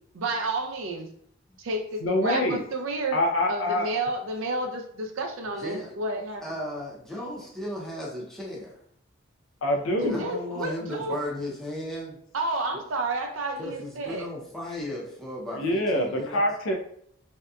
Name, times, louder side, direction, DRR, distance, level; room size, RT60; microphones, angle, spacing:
voice 1, 0.1-1.1 1.6-3.2 3.5-6.4 10.0-11.2 12.3-14.3, right 2 dB, 75° right, 4 dB, 0.5 m, -30 dB
voice 2, 2.0-2.6 3.1-3.9 9.6-10.3 15.6-16.7, left 1 dB, 80° left, 2 dB, 0.4 m, -25 dB
voice 3, 5.6-6.0 6.4-8.8 10.0-12.2 13.6-16.4, left 1 dB, ahead, -5 dB, 0.6 m, -35 dB
2.7 x 2.2 x 2.3 m, 0.66 s
head